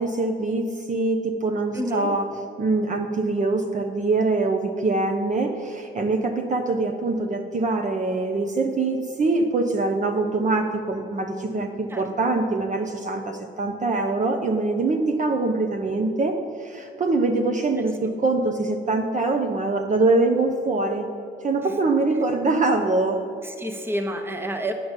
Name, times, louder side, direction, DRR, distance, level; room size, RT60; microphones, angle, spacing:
voice 1, 0.0-2.3 2.6-21.1 21.4-23.2, right 3 dB, 40° right, 4 dB, 0.8 m, -23 dB
voice 2, 1.7-2.1 11.9-12.1 18.0-18.1 21.6-21.7 23.4-24.7, equal, 10° right, 5 dB, 1.0 m, -29 dB
9.5 x 5.1 x 8.1 m, 2.6 s
cardioid pair, 90°, 20 cm